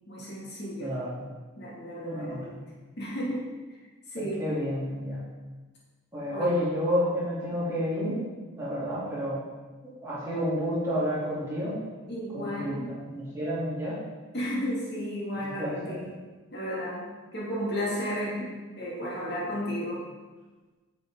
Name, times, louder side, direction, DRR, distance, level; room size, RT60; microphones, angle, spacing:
voice 1, 0.1-0.9 1.6-2.6 3.0-3.5 4.1-4.4 6.3-6.5 12.1-12.9 14.3-16.1 16.5-20.0, equal, 55° left, -6 dB, 2.4 m, -33 dB
voice 2, 0.8-1.2 2.0-2.6 4.2-5.2 6.1-8.2 8.6-9.4 10.0-11.8 12.3-14.0 15.3-16.0, equal, 15° right, -10 dB, 3.0 m, -30 dB
9.1 x 7.5 x 3.8 m, 1.3 s
head